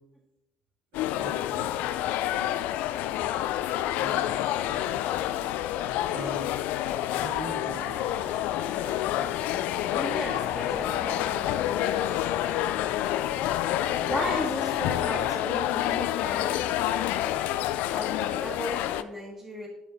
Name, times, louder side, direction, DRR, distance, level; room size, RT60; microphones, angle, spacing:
sound 1, 0.9-19.0, left 13 dB, 65° left, 0.3 m, -28 dB
voice 1, 0.9-3.4 3.8-4.3 4.5-5.4 6.1-6.7 7.2-8.2, right 1 dB, 70° right, -6 dB, 3.1 m, -43 dB
sound 2, 7.6-16.5, left 4 dB, 40° left, 0.9 m, -43 dB
voice 2, 9.8-12.0 13.9-16.6 17.9-19.7, equal, 10° right, -8 dB, 2.3 m, -36 dB
10.0 x 7.1 x 2.9 m, 0.96 s
hypercardioid pair, 60°, 3 cm